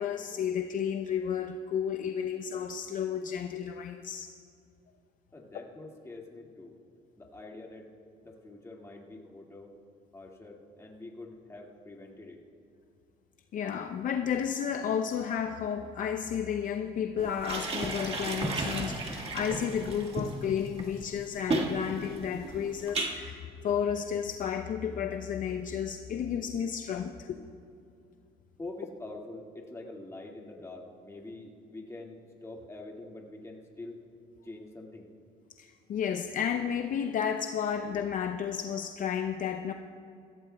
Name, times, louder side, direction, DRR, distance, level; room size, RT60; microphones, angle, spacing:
voice 1, 0.0-4.3 13.5-27.4 35.6-39.7, left 8 dB, 50° left, 6 dB, 0.5 m, -32 dB
voice 2, 5.3-6.7 7.2-7.9 8.2-9.7 10.1-12.4 28.6-34.0 34.4-35.1, left 2 dB, 15° left, -1 dB, 1.9 m, -45 dB
sound 1, 17.2-23.1, right 2 dB, 35° right, 1.6 m, -34 dB
21.5 x 15.5 x 2.2 m, 2.6 s
cardioid pair, 110°, 17 cm